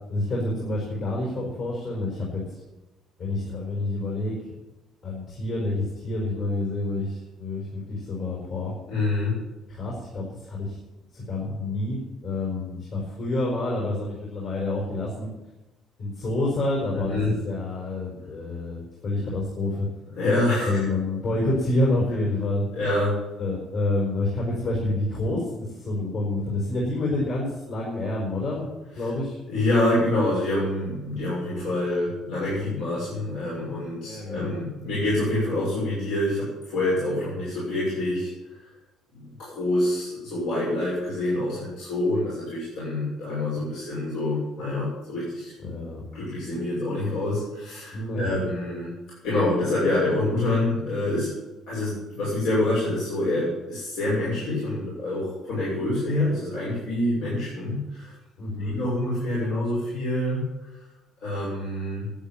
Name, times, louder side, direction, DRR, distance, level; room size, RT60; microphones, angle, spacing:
voice 1, 0.1-2.4 3.2-4.4 5.0-8.7 9.7-10.8 11.1-15.3 16.0-19.9 20.6-22.7 23.4-28.7 28.9-29.4 34.0-34.5 45.6-46.0 47.9-48.3 58.4-58.7, left 2 dB, 55° left, -3 dB, 5.1 m, -28 dB
voice 2, 8.9-9.4 16.9-17.3 20.2-20.8 22.7-23.2 29.5-38.6 39.1-45.5 46.1-48.9 49.2-51.3 51.7-58.1 58.6-60.7 61.2-62.1, left 1 dB, 85° left, -7 dB, 6.3 m, -26 dB
12.0 x 9.4 x 9.1 m, 1.1 s
cardioid pair, 115°, 0 cm